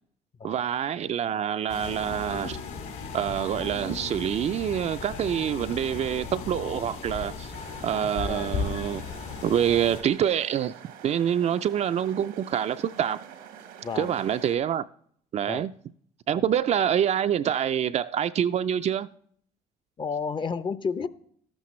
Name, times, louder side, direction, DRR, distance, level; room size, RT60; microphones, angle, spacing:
voice 1, 0.4-2.6 3.1-7.5 7.8-9.0 9.4-10.8 11.0-13.2 14.0-14.8 15.3-15.7 16.3-19.1, right 9 dB, 45° right, 0.4 m, -26 dB
sound 1, 1.7-10.0, left 5 dB, 65° left, 3.6 m, -36 dB
sound 2, 7.5-14.6, right 8 dB, 90° right, 1.2 m, -47 dB
voice 2, 8.3-8.7 13.8-14.1 15.5-15.7 16.3-16.4 20.0-21.1, left 5 dB, 30° left, 0.7 m, -31 dB
13.0 x 11.5 x 3.1 m
supercardioid pair, 85°, 16 cm